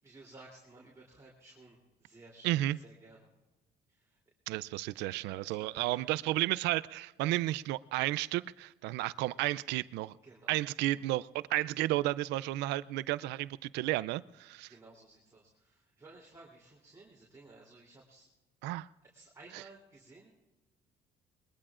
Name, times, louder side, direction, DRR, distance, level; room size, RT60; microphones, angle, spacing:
voice 1, 0.0-3.3 3.9-4.2 5.1-6.1 10.2-11.1 14.7-18.3 19.0-20.3, right 2 dB, 15° right, -4 dB, 3.2 m, -56 dB
voice 2, 2.4-2.8 4.5-10.2 10.5-14.7 18.6-18.9, right 17 dB, 90° right, 18 dB, 0.4 m, -32 dB
22.0 x 21.5 x 2.5 m, 1.2 s
cardioid pair, 110°, 17 cm